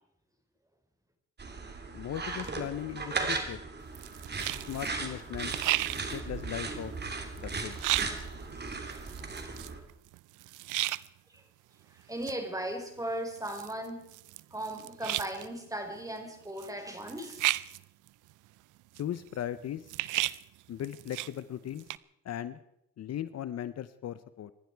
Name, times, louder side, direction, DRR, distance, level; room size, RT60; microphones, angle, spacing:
sound 1, 1.4-9.8, right 4 dB, 35° right, 3.1 m, -37 dB
voice 1, 1.9-3.6 4.7-5.5 6.1-6.9 7.4-7.8 19.0-19.8 20.7-21.8 22.2-22.6 23.0-24.5, left 11 dB, 55° left, 14 dB, 0.8 m, -37 dB
sound 2, 3.9-4.9 5.3-11.1 12.0-12.4 12.7-12.8 13.0-15.6 16.0-16.1 16.6-16.7 17.0-18.5 18.9-21.4 21.7-22.0, right 17 dB, 85° right, 0.6 m, -34 dB
voice 2, 11.9-14.0 14.5-17.7, right 1 dB, 10° right, 4 dB, 4.6 m, -37 dB
26.0 x 11.5 x 4.7 m, 0.80 s
cardioid pair, 90°, 30 cm